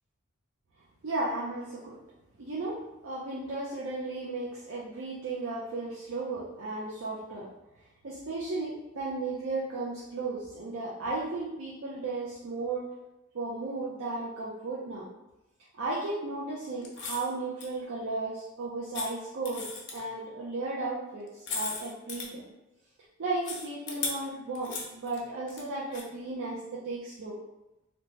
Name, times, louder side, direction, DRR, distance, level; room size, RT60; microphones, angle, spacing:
voice 1, 1.0-2.0 2.4-7.5 8.0-12.9 13.3-15.1 15.8-19.7 19.9-22.4 23.2-27.4, right 2 dB, 65° right, -5 dB, 0.5 m, -35 dB
sound 1, 16.8-17.3 17.6-17.7 18.9-19.1 19.5-20.1 21.3-22.3 23.4-24.1 24.6-25.6 25.9-26.0, left 4 dB, 60° left, 0.6 m, -36 dB
2.7 x 2.1 x 3.0 m, 0.95 s
head